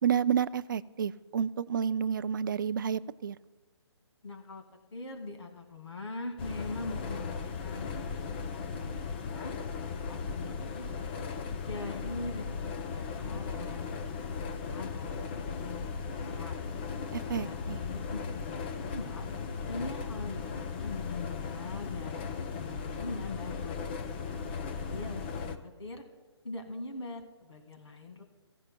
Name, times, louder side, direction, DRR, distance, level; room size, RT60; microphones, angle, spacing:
voice 1, 0.0-3.4 17.1-17.8, right 8 dB, 45° right, 15 dB, 0.4 m, -30 dB
voice 2, 4.2-4.6 4.9-9.5 9.8-10.9 11.6-14.2 14.5-16.6 17.4-19.3 19.7-23.8 24.6-26.0 26.4-28.2, left 2 dB, 75° left, 5 dB, 2.1 m, -42 dB
sound 1, 6.4-25.6, left 5 dB, 20° left, 0.6 m, -37 dB
16.0 x 16.0 x 2.2 m, 1.3 s
hypercardioid pair, 160°, 15 cm